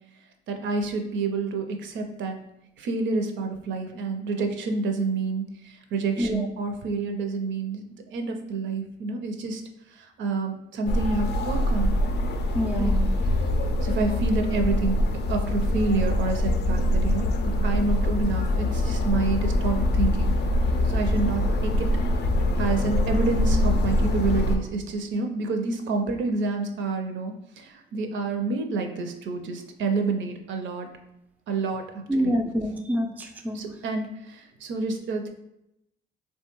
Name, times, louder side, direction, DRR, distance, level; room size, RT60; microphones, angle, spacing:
voice 1, 0.5-2.4 2.8-9.6 9.9-12.0 12.8-13.0 13.8-15.0 15.3-20.3 20.9-21.9 22.6-30.9 31.5-32.4 33.5-35.3, right 3 dB, 70° right, 5 dB, 0.5 m, -28 dB
sound 1, 10.9-24.6, left 1 dB, 60° left, 0.4 m, -24 dB
voice 2, 12.5-13.1 32.1-33.6, equal, 10° right, 4 dB, 0.3 m, -26 dB
3.2 x 2.2 x 2.9 m, 0.83 s
cardioid pair, 90°, 20 cm